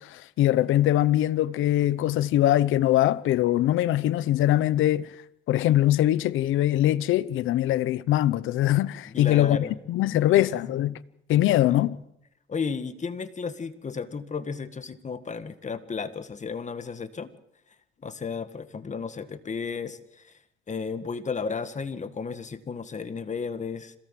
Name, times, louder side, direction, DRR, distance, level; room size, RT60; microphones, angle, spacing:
voice 1, 0.0-5.1 5.5-9.6 9.9-10.9 11.3-12.0, left 13 dB, 85° left, 0.9 m, -22 dB
voice 2, 9.1-9.7 10.1-10.7 11.4-11.9 12.5-17.3 18.0-20.4 20.7-23.9, left 5 dB, 35° left, 1.9 m, -34 dB
26.5 x 17.5 x 7.7 m
cardioid pair, 90°, 20 cm